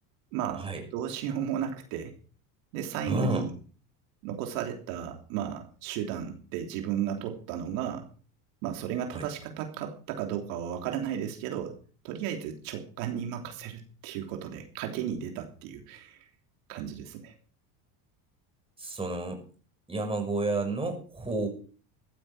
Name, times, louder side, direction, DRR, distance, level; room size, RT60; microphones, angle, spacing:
voice 1, 0.3-2.2 2.7-3.5 4.2-8.1 8.6-11.8 12.0-16.3 16.7-17.3, right 9 dB, 75° right, 3 dB, 3.4 m, -34 dB
voice 2, 3.1-3.4 9.1-9.3 18.8-19.4 19.9-21.6, right 2 dB, 10° right, 3 dB, 6.3 m, -30 dB
15.0 x 13.5 x 5.0 m, 0.41 s
supercardioid pair, 115°, 45 cm